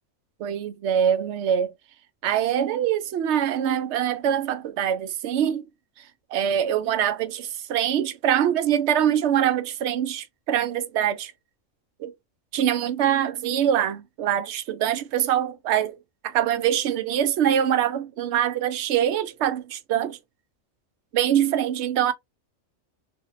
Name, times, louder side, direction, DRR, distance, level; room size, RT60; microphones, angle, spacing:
voice 1, 0.4-1.7 2.2-5.6 6.0-11.3 12.0-12.1 12.5-16.0 16.2-20.2 21.1-22.1, right 10 dB, 65° right, 0.8 m, -24 dB
3.4 x 2.7 x 2.5 m
omnidirectional pair, 1.4 m